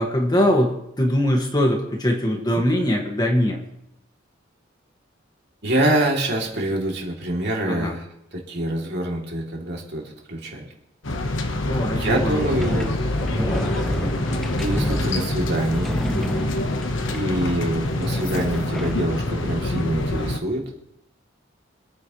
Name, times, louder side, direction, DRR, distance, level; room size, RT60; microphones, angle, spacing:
voice 1, 0.0-3.6 7.7-8.0 11.6-12.4 13.4-13.6, equal, 20° left, 1 dB, 1.9 m, -22 dB
voice 2, 5.6-8.0 8.3-10.7 11.9-13.0 14.6-16.0 17.1-20.6, right 1 dB, 55° right, -1 dB, 3.1 m, -25 dB
sound 1, 11.0-20.4, left 1 dB, 70° left, 1.3 m, -26 dB
sound 2, 12.4-19.2, equal, ahead, 0.5 m, -30 dB
26.0 x 9.6 x 3.2 m, 0.79 s
head